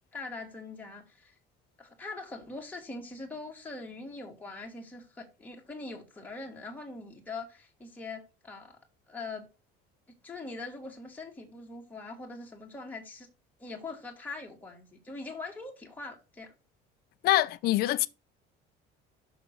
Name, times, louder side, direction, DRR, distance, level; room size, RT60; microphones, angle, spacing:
voice 1, 0.1-1.4 1.8-8.8 9.1-9.5 10.1-13.3 13.6-16.5, left 3 dB, 10° left, 1.7 m, -42 dB
voice 2, 17.2-18.1, left 15 dB, 50° left, 0.5 m, -24 dB
6.1 x 6.0 x 6.5 m
cardioid pair, 165°, 20 cm